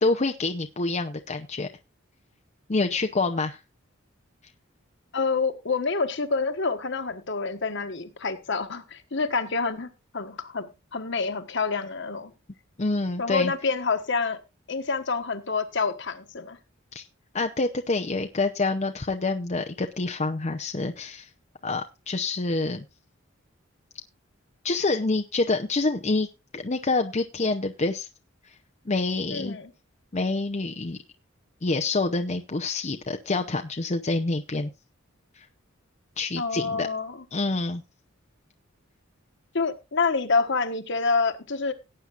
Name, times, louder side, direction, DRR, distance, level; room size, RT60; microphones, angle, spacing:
voice 1, 0.0-1.7 2.7-3.6 12.8-13.5 16.9-17.0 17.3-21.3 21.6-22.8 24.6-26.3 26.5-28.1 28.9-29.6 30.1-31.0 31.6-34.7 35.4-35.5 36.2-36.9 37.3-37.8, left 3 dB, 35° left, 5 dB, 0.7 m, -27 dB
voice 2, 5.1-12.3 13.2-14.4 14.7-16.6 29.3-29.7 36.4-37.2 39.5-41.7, left 4 dB, 60° left, 7 dB, 1.4 m, -27 dB
18.0 x 8.8 x 2.5 m, 0.27 s
head